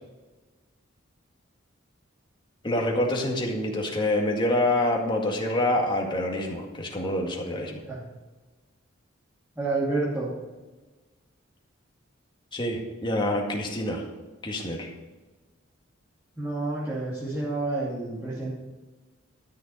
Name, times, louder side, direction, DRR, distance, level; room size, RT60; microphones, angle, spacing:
voice 1, 2.6-7.7 12.5-14.0 14.4-14.9, left 1 dB, 25° left, 0 dB, 2.0 m, -26 dB
voice 2, 9.5-10.3 16.4-18.5, right 2 dB, 10° right, -8 dB, 2.6 m, -29 dB
13.0 x 6.7 x 5.5 m, 1.2 s
head